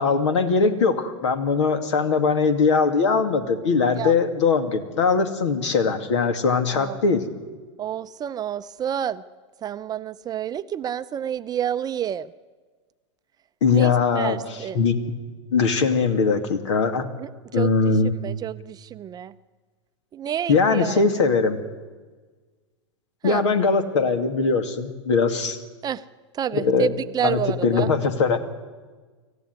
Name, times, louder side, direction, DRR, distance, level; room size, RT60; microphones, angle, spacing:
voice 1, 0.0-7.2 13.6-15.0 15.5-17.1 17.5-18.1 20.5-21.6 23.2-25.6 26.5-26.9 27.2-28.4, left 4 dB, 70° left, 8 dB, 2.6 m, -21 dB
voice 2, 6.7-7.0 7.8-9.2 9.6-12.3 13.7-14.8 17.2-17.7 18.0-19.3 20.1-21.0 23.2-23.4 25.8-26.0 26.3-27.9, right 10 dB, 25° right, 13 dB, 0.6 m, -29 dB
25.0 x 14.5 x 9.6 m, 1.4 s
hypercardioid pair, 105°, 16 cm